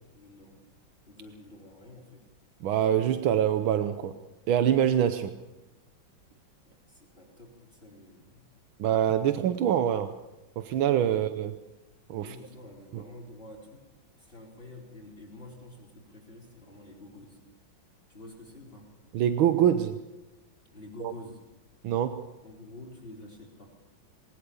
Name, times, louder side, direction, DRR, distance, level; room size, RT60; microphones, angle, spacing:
voice 1, 0.1-0.6 1.1-2.2 6.6-8.4 11.1-11.2 12.2-13.8 14.2-17.4 18.1-18.9 20.7-21.4 22.4-23.7, left 2 dB, 25° left, -1 dB, 4.2 m, -48 dB
voice 2, 2.6-4.1 4.5-5.3 8.8-10.1 10.6-11.5 12.1-12.4 12.9-13.0 19.1-20.0 21.0-21.1 21.8-22.2, right 10 dB, 85° right, 9 dB, 1.7 m, -25 dB
20.5 x 19.0 x 7.0 m, 1.0 s
omnidirectional pair, 2.2 m